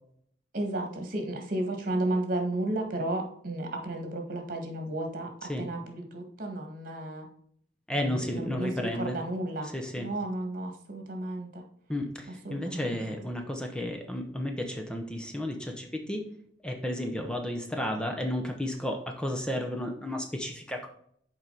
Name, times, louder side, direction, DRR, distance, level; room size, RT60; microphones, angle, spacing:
voice 1, 0.5-7.3 7.9-11.6 12.3-13.2, right 1 dB, 50° right, 3 dB, 1.7 m, -33 dB
voice 2, 7.9-9.2 9.7-10.1 11.9-16.2 16.6-20.9, left 1 dB, 5° left, 3 dB, 0.8 m, -32 dB
7.1 x 4.7 x 3.9 m, 0.66 s
head